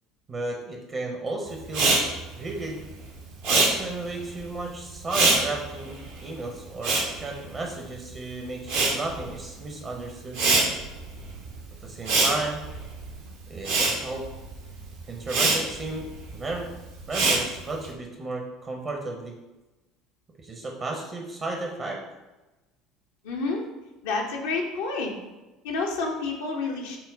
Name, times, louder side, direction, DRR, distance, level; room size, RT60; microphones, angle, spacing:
voice 1, 0.3-2.1 2.4-2.8 3.4-6.0 6.2-10.4 11.8-12.6 13.5-14.2 15.1-16.1 16.3-16.7 17.1-19.4 20.4-22.0, right 2 dB, 35° right, 1 dB, 0.7 m, -33 dB
Respiratory sounds, 1.7-8.1 8.4-17.9, right 3 dB, 65° right, 0.8 m, -26 dB
voice 2, 23.2-23.6 24.0-25.1 25.6-27.0, left 3 dB, 65° left, -1 dB, 0.6 m, -29 dB
5.7 x 2.1 x 3.7 m, 1.1 s
figure-of-eight pair, 65°, 0 cm